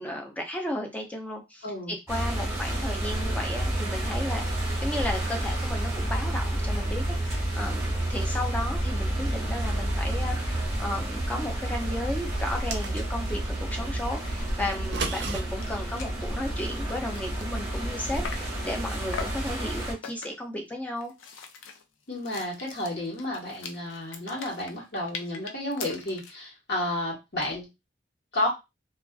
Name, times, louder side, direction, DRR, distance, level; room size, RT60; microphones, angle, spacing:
voice 1, 0.0-21.1, left 1 dB, 10° left, 2 dB, 0.4 m, -34 dB
voice 2, 1.6-2.0 22.1-27.7 28.3-28.5, left 1 dB, 55° left, -4 dB, 1.2 m, -31 dB
sound 1, 2.1-19.9, right 1 dB, 15° right, 1.0 m, -30 dB
sound 2, 12.4-13.3 14.7-15.4, right 5 dB, 60° right, 0.5 m, -33 dB
sound 3, 15.6-15.7 16.0-16.2 16.6-18.6 19.1-19.5 20.0-20.5 21.0-26.4, left 5 dB, 85° left, 0.4 m, -41 dB
2.4 x 2.3 x 2.3 m, 0.24 s
head